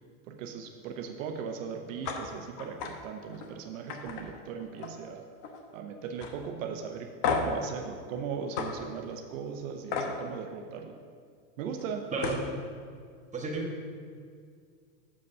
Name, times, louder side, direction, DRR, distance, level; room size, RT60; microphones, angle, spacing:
voice 1, 0.2-5.3 5.7-11.0 11.6-12.1, right 6 dB, 70° right, 5 dB, 0.8 m, -38 dB
sound 1, 2.0-2.2 2.6-2.9 3.3-3.5 3.9-5.1 5.4-5.8 6.2-6.3 7.2-7.6 8.6-8.7 9.9-10.1 11.8-11.9 12.2-12.5, left 5 dB, 50° left, 1.1 m, -32 dB
voice 2, 13.3-13.9, right 3 dB, 15° right, -1 dB, 1.3 m, -33 dB
6.8 x 5.3 x 5.4 m, 2.1 s
supercardioid pair, 120°, 41 cm